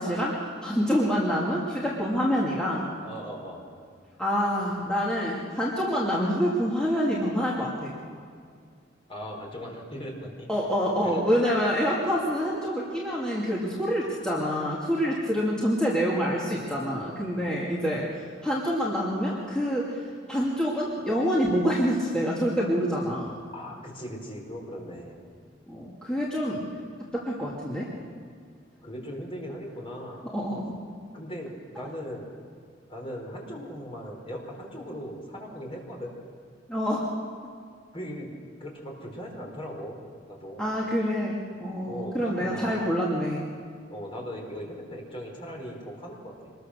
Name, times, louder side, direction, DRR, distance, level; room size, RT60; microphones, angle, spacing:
voice 1, 0.0-2.8 4.2-7.9 10.5-18.1 18.4-20.0 20.3-23.3 25.7-26.6 27.1-27.9 30.3-30.7 36.7-37.1 40.6-43.4, equal, 5° left, -6 dB, 2.5 m, -26 dB
voice 2, 3.0-3.6 9.1-10.5 11.0-11.2 23.5-25.3 28.8-30.3 31.1-32.3 32.9-36.1 37.9-38.3 38.6-40.0 40.3-40.6 41.8-42.9 43.9-46.5, equal, 30° left, 0 dB, 4.7 m, -38 dB
25.5 x 21.0 x 6.6 m, 2.2 s
head